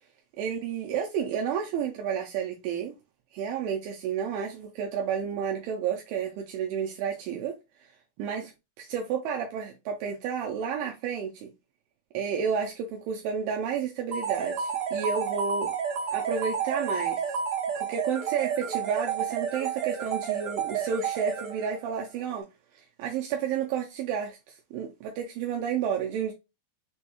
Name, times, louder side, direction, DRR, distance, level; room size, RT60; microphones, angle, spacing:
voice 1, 0.4-2.9 3.3-7.9 8.2-8.5 8.8-11.5 12.1-15.7 16.1-17.2 17.8-22.5 22.7-26.3, right 7 dB, 80° right, 2.3 m, -31 dB
sound 1, 14.1-21.9, right 7 dB, 60° right, 2.0 m, -30 dB
6.1 x 2.2 x 2.9 m
omnidirectional pair, 4.2 m